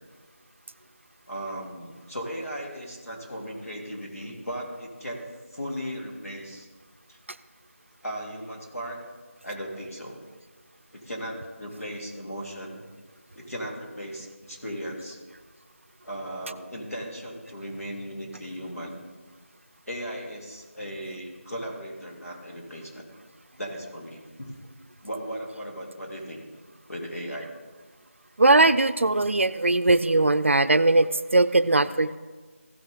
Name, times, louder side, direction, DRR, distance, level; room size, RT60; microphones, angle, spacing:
voice 1, 1.3-6.7 7.1-7.2 8.0-9.0 9.4-10.2 10.9-12.8 13.3-15.2 16.0-19.0 19.9-23.0 23.6-24.5 25.0-26.4 26.9-27.5, equal, 80° left, 0 dB, 3.1 m, -37 dB
voice 2, 28.4-32.2, right 2 dB, 60° right, 13 dB, 0.4 m, -20 dB
16.0 x 6.0 x 3.8 m, 1.4 s
figure-of-eight pair, 170°, 8 cm